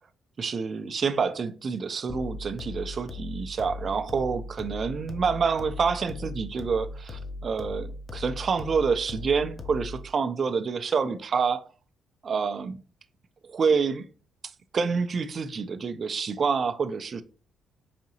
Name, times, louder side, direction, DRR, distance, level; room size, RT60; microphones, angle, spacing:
voice 1, 0.4-11.7 12.2-12.8 13.4-14.0 14.7-17.2, right 5 dB, 45° right, 0.4 m, -27 dB
sound 1, 2.1-10.1, left 2 dB, 35° left, 0.6 m, -38 dB
4.9 x 2.7 x 2.8 m
cardioid pair, 90°, 0 cm